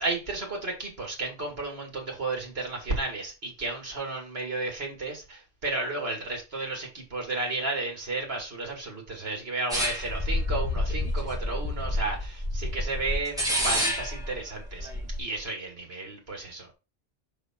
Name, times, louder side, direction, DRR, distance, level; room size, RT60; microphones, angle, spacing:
voice 1, 0.0-14.9 15.2-16.7, right 3 dB, 65° right, 2.5 m, -33 dB
sound 1, 9.7-15.2, left 1 dB, 5° right, 2.7 m, -29 dB
5.8 x 5.0 x 4.4 m
omnidirectional pair, 1.1 m